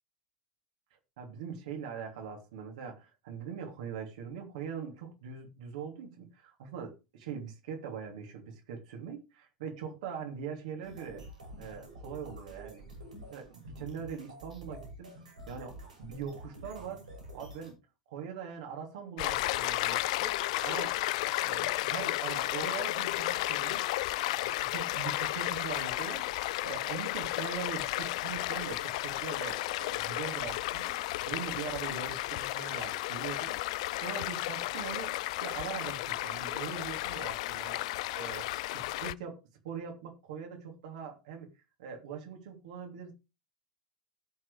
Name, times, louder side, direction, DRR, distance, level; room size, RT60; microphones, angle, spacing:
voice 1, 1.2-11.2 11.6-12.8 13.3-15.1 15.5-17.0 17.3-17.8 18.1-20.3 20.6-20.9 21.4-23.9 24.3-30.9 31.3-33.5 34.0-35.1 35.4-37.8 38.1-39.4 39.6-41.5 41.8-43.1, right 7 dB, 65° right, 2.9 m, -42 dB
sound 1, 10.8-17.7, right 1 dB, 80° right, 6.7 m, -48 dB
Stream, 19.2-39.1, left 17 dB, 60° left, 0.4 m, -33 dB
18.0 x 6.2 x 3.4 m
figure-of-eight pair, 80°, 4 cm